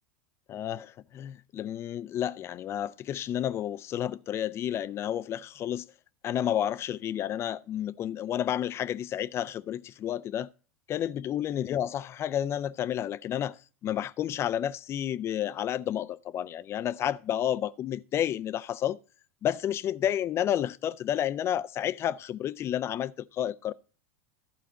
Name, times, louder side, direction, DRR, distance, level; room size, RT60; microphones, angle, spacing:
voice 1, 0.5-5.9 6.2-10.5 10.9-19.0 19.4-23.7, left 10 dB, 35° left, 0.5 m, -31 dB
12.0 x 4.1 x 7.3 m
hypercardioid pair, 90°, 7 cm